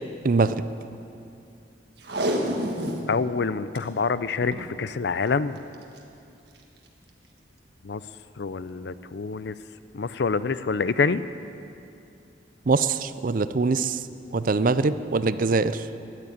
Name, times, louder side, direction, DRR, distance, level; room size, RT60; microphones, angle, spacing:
voice 1, 0.2-0.5 12.7-14.0 14.3-15.8, right 4 dB, 45° right, 13 dB, 0.5 m, -23 dB
Packing tape duct tape, 2.0-3.1 3.5-3.6 3.7-3.8 4.4-4.7 5.7-6.0 6.6-6.7, equal, 65° right, 1.6 m, -28 dB
voice 2, 3.1-5.6 7.8-8.0 8.4-9.5 9.9-11.2, left 4 dB, 65° left, 14 dB, 0.5 m, -26 dB
13.5 x 9.8 x 9.4 m, 2.6 s
head